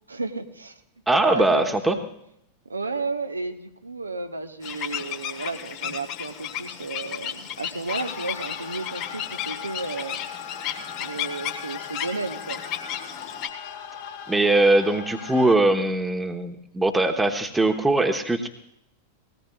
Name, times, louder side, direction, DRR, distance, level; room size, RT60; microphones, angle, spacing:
voice 1, 0.1-0.8 1.1-1.5 1.9-2.1 2.6-10.5 11.0-12.6, right 3 dB, 80° right, 7 dB, 1.0 m, -33 dB
voice 2, 1.1-2.0 14.3-18.5, right 2 dB, 10° right, 3 dB, 1.1 m, -21 dB
sound 1, 4.6-13.5, left 9 dB, 40° left, 1.3 m, -34 dB
sound 2, 7.9-15.6, left 8 dB, 55° left, 2.0 m, -39 dB
19.5 x 17.5 x 2.4 m, 0.76 s
figure-of-eight pair, 90°, 0 cm